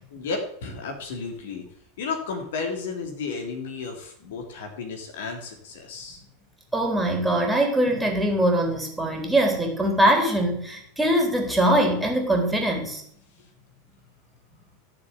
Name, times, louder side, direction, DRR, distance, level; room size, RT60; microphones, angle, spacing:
voice 1, 0.1-1.6 2.0-6.2, left 4 dB, 60° left, 3 dB, 3.3 m, -33 dB
voice 2, 6.7-13.0, right 1 dB, 5° right, 2 dB, 3.9 m, -22 dB
14.5 x 7.1 x 8.0 m, 0.66 s
figure-of-eight pair, 85°, 0 cm